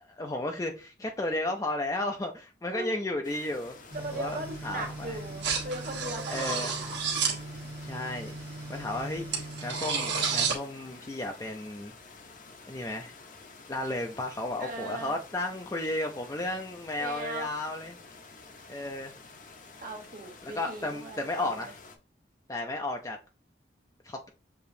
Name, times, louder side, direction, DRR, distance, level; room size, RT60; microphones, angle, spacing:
voice 1, 0.2-3.8 4.1-5.2 6.3-6.8 7.8-8.4 8.7-11.9 12.7-13.1 13.7-18.0 18.7-19.1 20.4-21.8 22.5-23.2 24.0-24.3, left 2 dB, 20° left, 0.4 m, -33 dB
voice 2, 2.7-3.1 3.9-6.9 14.6-15.1 17.0-17.5 18.7-18.8 19.8-21.7, right 2 dB, 50° right, 1.2 m, -39 dB
sound 1, 3.2-22.0, left 4 dB, 45° left, 0.7 m, -50 dB
sound 2, 3.9-10.6, right 5 dB, 90° right, 1.3 m, -33 dB
6.7 x 2.9 x 2.7 m
head